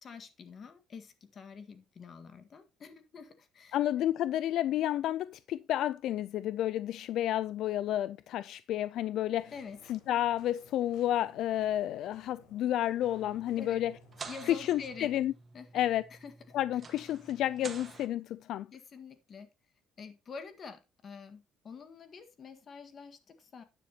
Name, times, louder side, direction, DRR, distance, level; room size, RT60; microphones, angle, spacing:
voice 1, 0.0-3.8 9.5-9.8 13.6-13.8 14.3-15.1 15.5-15.8 16.1-16.3 18.7-19.5 20.0-23.6, left 5 dB, 35° left, 1.7 m, -47 dB
voice 2, 3.7-9.5 9.9-13.9 14.5-15.3 15.7-16.0 16.5-18.7, left 12 dB, 60° left, 0.4 m, -31 dB
sound 1, 9.4-15.2, left 2 dB, 85° left, 5.5 m, -60 dB
sound 2, 13.0-18.1, right 5 dB, 25° right, 1.5 m, -49 dB
11.5 x 9.9 x 2.9 m
cardioid pair, 160°, 0 cm